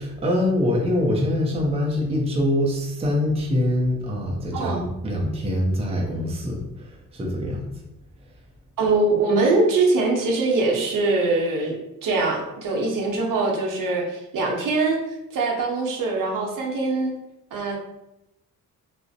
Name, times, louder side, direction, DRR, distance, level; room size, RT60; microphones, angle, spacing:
voice 1, 0.0-7.6, left 1 dB, 15° right, -1 dB, 0.5 m, -24 dB
voice 2, 4.5-4.9 8.8-11.8 12.0-15.0 15.3-17.1 17.5-17.8, right 3 dB, 65° right, -1 dB, 0.7 m, -22 dB
2.4 x 2.0 x 2.6 m, 0.89 s
cardioid pair, 75°, 35 cm